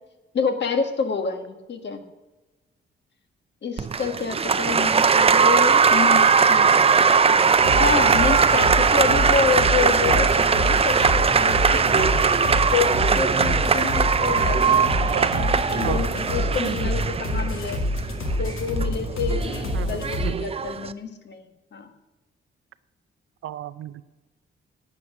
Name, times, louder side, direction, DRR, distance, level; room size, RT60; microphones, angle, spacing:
voice 1, 0.3-2.0 3.6-6.8 7.8-17.8 18.4-21.5 21.7-21.9, left 5 dB, 55° left, 6 dB, 1.5 m, -28 dB
Applause, 3.8-20.9, right 6 dB, 30° right, 0.5 m, -20 dB
sound 1, 7.6-20.3, left 1 dB, 80° left, 2.2 m, -27 dB
voice 2, 15.1-15.5 15.8-16.0 19.7-20.5 23.4-24.0, right 12 dB, 80° right, 15 dB, 0.6 m, -33 dB
11.5 x 8.5 x 6.1 m, 1.1 s
cardioid pair, 120°, 21 cm